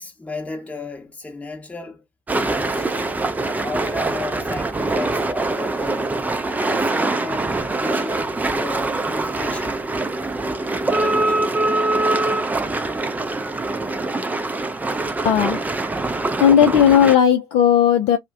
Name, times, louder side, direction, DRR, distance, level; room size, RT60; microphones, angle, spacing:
voice 1, 0.0-2.0 2.4-3.2 3.4-6.2 6.6-9.8 10.9-11.6, left 2 dB, 10° left, 0.9 m, -34 dB
sound 1, 2.3-17.2, right 2 dB, 10° right, 0.5 m, -23 dB
voice 2, 15.2-15.6 16.4-18.2, left 9 dB, 55° left, 0.4 m, -15 dB
2.4 x 2.1 x 3.5 m
figure-of-eight pair, 55°, 13 cm